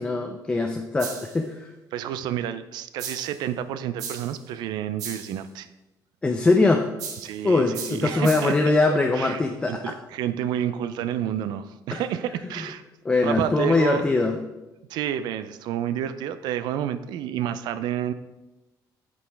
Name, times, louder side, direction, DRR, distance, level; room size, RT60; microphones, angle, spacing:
voice 1, 0.0-1.6 6.2-6.8 7.4-9.9 11.9-12.0 13.1-14.4, left 3 dB, 15° left, 3 dB, 0.3 m, -22 dB
sound 1, 1.0-1.4 3.0-3.4 4.0-4.4 5.0-5.4 7.0-7.4 7.7-8.7, right 6 dB, 55° right, 0.9 m, -36 dB
voice 2, 1.9-5.7 7.2-8.5 8.9-9.4 9.7-12.8 13.2-14.0 14.9-18.1, right 10 dB, 80° right, 12 dB, 0.4 m, -29 dB
7.9 x 5.2 x 3.4 m, 1.0 s
cardioid pair, 175°, 7 cm